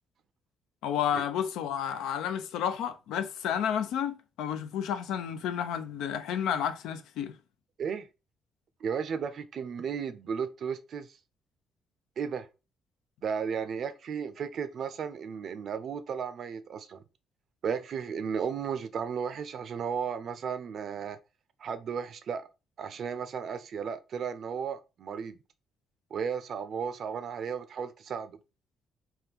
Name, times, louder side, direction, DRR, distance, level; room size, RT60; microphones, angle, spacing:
voice 1, 0.8-7.4, left 9 dB, 90° left, 0.4 m, -31 dB
voice 2, 8.8-11.2 12.2-12.5 13.2-17.0 17.6-21.2 21.6-22.4 22.8-25.4 26.1-28.4, right 6 dB, 60° right, 0.5 m, -34 dB
3.5 x 2.2 x 2.8 m
cardioid pair, 90°, 0 cm